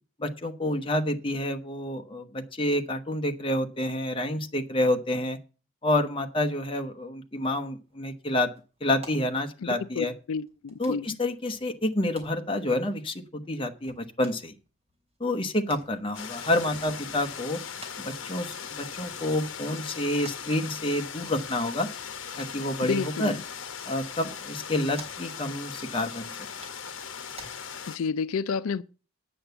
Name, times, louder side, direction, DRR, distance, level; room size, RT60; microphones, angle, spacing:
voice 1, 0.2-5.4 5.8-8.5 8.8-10.1 10.8-14.5 15.2-17.6 18.0-21.9 22.4-23.4 23.9-26.3, left 1 dB, 25° left, 1.0 m, -28 dB
sound 1, 7.7-27.5, right 2 dB, 30° right, 3.7 m, -54 dB
voice 2, 9.8-11.1 22.8-23.4 27.9-28.8, left 5 dB, 85° left, 0.4 m, -30 dB
sound 2, 16.1-28.0, left 7 dB, 65° left, 1.0 m, -39 dB
8.8 x 6.9 x 7.9 m
head